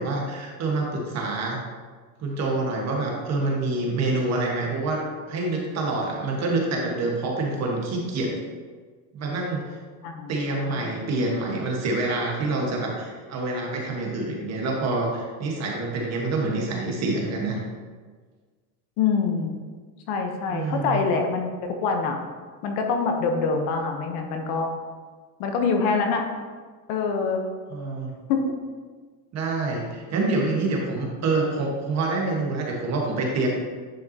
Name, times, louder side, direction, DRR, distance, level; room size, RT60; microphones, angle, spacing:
voice 1, 0.0-1.6 2.2-8.4 9.1-9.8 10.3-17.6 20.5-21.0 27.7-28.1 29.3-33.5, right 2 dB, 35° right, -1 dB, 1.5 m, -26 dB
voice 2, 10.0-10.9 19.0-19.5 20.1-21.5 21.8-22.2 22.6-24.7 25.4-26.2 26.9-27.4 28.3-28.4, left 5 dB, 55° left, 4 dB, 1.1 m, -25 dB
10.0 x 5.7 x 2.9 m, 1.5 s
cardioid pair, 160°, 47 cm